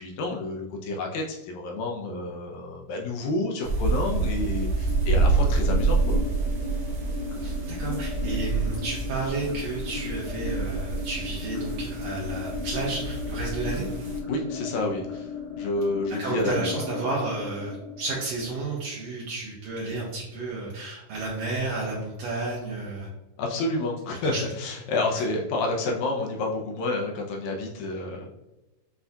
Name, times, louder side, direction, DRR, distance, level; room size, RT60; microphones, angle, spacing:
voice 1, 0.0-6.2 14.3-15.3 15.6-16.7 23.4-28.3, left 2 dB, 85° left, 0 dB, 1.6 m, -29 dB
sound 1, 3.6-14.2, right 3 dB, 65° right, 1.4 m, -27 dB
sound 2, 4.0-19.0, left 4 dB, 60° left, 1.9 m, -36 dB
voice 2, 7.4-13.9 16.1-23.1 24.2-24.4 25.1-25.2, right 3 dB, 80° right, -4 dB, 1.5 m, -32 dB
7.8 x 2.7 x 2.3 m, 1.0 s
omnidirectional pair, 3.9 m